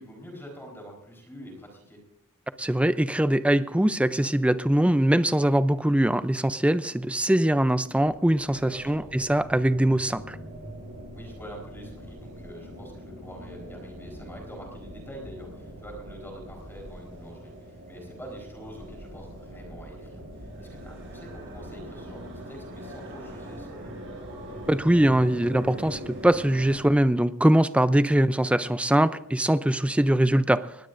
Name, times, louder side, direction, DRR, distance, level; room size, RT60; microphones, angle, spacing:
voice 1, 0.0-2.0 8.6-9.1 11.1-24.0, equal, 10° left, 0 dB, 4.0 m, -45 dB
voice 2, 2.6-10.4 24.7-30.7, right 1 dB, 5° right, 13 dB, 0.5 m, -22 dB
sound 1, 7.9-26.9, equal, 60° right, 7.0 m, -42 dB
20.0 x 18.5 x 2.6 m, 0.82 s
head